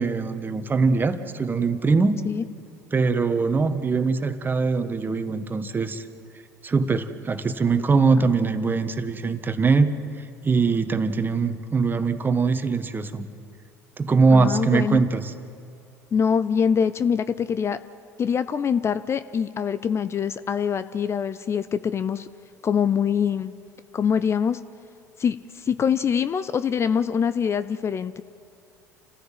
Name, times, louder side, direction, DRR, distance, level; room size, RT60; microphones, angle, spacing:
voice 1, 0.0-2.2 2.9-6.1 6.6-9.9 10.4-13.3 14.0-15.3, right 4 dB, 25° right, 10 dB, 1.5 m, -22 dB
voice 2, 14.3-15.0 16.1-17.8 18.2-22.3 22.6-23.5 23.9-24.6 25.2-28.2, left 7 dB, 30° left, 14 dB, 0.6 m, -24 dB
29.5 x 14.5 x 7.6 m, 2.4 s
figure-of-eight pair, 65°, 8 cm